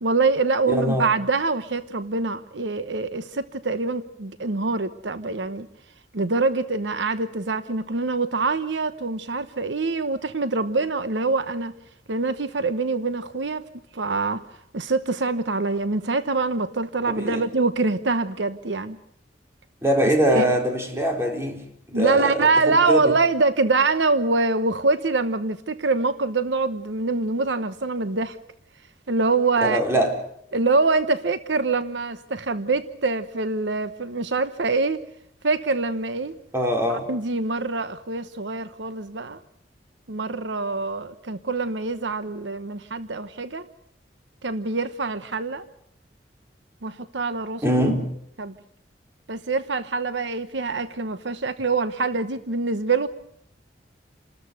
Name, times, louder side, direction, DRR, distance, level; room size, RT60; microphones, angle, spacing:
voice 1, 0.0-5.7 6.1-11.7 12.1-13.6 13.9-14.4 14.7-19.0 20.3-20.4 21.9-28.3 29.1-29.8 30.5-35.0 35.4-36.4 36.9-39.4 40.1-43.7 44.4-45.6 46.8-47.6 48.4-48.5 49.3-53.1, right 3 dB, 85° right, 1.0 m, -24 dB
voice 2, 0.7-1.1 17.1-17.4 19.8-21.6 21.9-23.1 29.6-30.1 36.5-37.1 47.6-48.1, equal, 15° right, 4.1 m, -22 dB
28.5 x 13.5 x 8.0 m
head